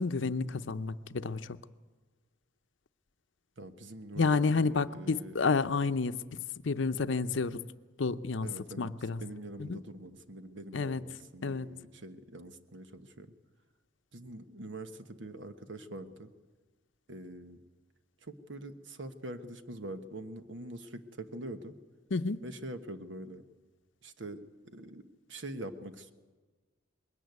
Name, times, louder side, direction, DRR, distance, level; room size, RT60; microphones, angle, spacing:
voice 1, 0.0-1.6 4.2-7.6 8.0-8.5 8.8-9.2 9.7-9.8 10.7-11.0 11.4-11.7 22.1-22.4, left 4 dB, 70° left, 12 dB, 0.7 m, -30 dB
voice 2, 3.6-4.3 4.6-5.3 8.4-8.9 9.2-13.3 14.1-16.3 17.1-17.6 18.2-21.7 22.4-23.4 24.0-26.1, right 1 dB, 70° right, 9 dB, 1.2 m, -44 dB
21.0 x 17.5 x 9.4 m, 1.4 s
head